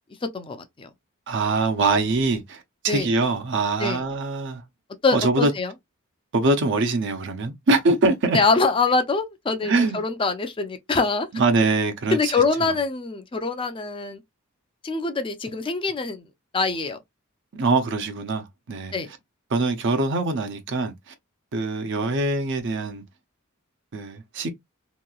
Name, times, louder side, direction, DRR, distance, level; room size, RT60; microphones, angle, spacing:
voice 1, 0.3-0.9 2.9-3.1 3.8-4.0 5.0-5.7 8.3-11.3 12.1-14.2 14.8-16.2 16.5-17.0 18.9-19.1, left 4 dB, 25° left, 0.4 m, -24 dB
voice 2, 1.3-4.6 5.1-5.5 6.3-8.4 9.6-10.0 11.3-12.7 17.5-18.9 19.5-21.1 21.5-23.0 23.9-24.5, right 3 dB, 60° right, 0.6 m, -23 dB
2.9 x 2.7 x 2.3 m
head